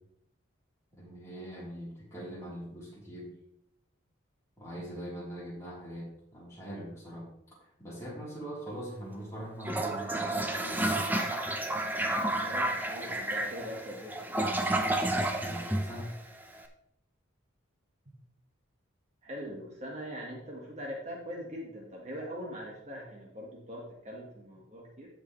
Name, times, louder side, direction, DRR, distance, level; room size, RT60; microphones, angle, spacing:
voice 1, 0.9-3.3 4.6-7.3 7.8-11.1 15.4-16.1, right 1 dB, 15° left, -7 dB, 3.7 m, -42 dB
Toilet flush, 9.6-16.6, right 1 dB, 10° right, 0.7 m, -31 dB
voice 2, 12.4-14.8 19.2-25.1, equal, 35° right, -2 dB, 1.6 m, -42 dB
15.5 x 5.2 x 3.2 m, 0.78 s
head